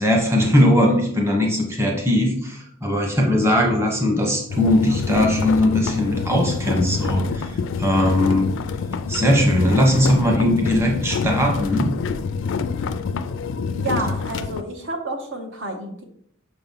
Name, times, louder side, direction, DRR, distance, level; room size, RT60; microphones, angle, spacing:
voice 1, 0.0-7.5 7.8-8.5 9.1-11.9, left 1 dB, 15° right, 0 dB, 1.0 m, -19 dB
sound 1, 4.5-14.6, left 5 dB, 60° left, 0.3 m, -27 dB
voice 2, 13.8-16.0, right 2 dB, 65° right, 3 dB, 0.9 m, -29 dB
6.2 x 3.0 x 5.4 m, 0.68 s
head